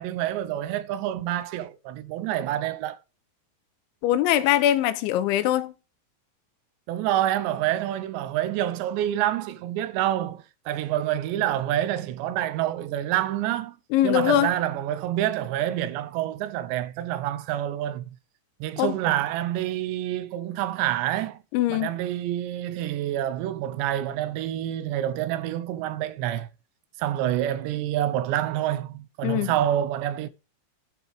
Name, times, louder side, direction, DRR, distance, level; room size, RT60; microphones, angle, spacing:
voice 1, 0.0-3.0 6.9-13.8 14.0-18.1 18.6-21.4 21.7-26.5 27.0-30.3, right 12 dB, 80° right, 2.8 m, -27 dB
voice 2, 4.0-5.7 13.9-14.5 18.8-18.9 21.5-21.9 29.2-29.5, left 12 dB, 85° left, 3.2 m, -22 dB
10.0 x 8.7 x 3.5 m
omnidirectional pair, 5.3 m